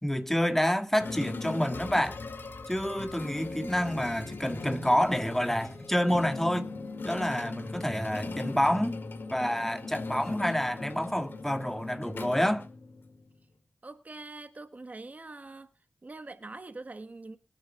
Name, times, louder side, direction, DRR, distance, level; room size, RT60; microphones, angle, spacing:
voice 1, 0.0-2.2 2.7-6.7 7.0-9.0 9.3-12.7, equal, 10° left, 1.9 m, -28 dB
sound 1, 1.0-13.3, left 3 dB, 80° left, 2.0 m, -39 dB
voice 2, 13.8-15.7 16.0-17.4, right 2 dB, 45° right, 1.2 m, -44 dB
23.0 x 8.8 x 2.3 m
cardioid pair, 50°, 4 cm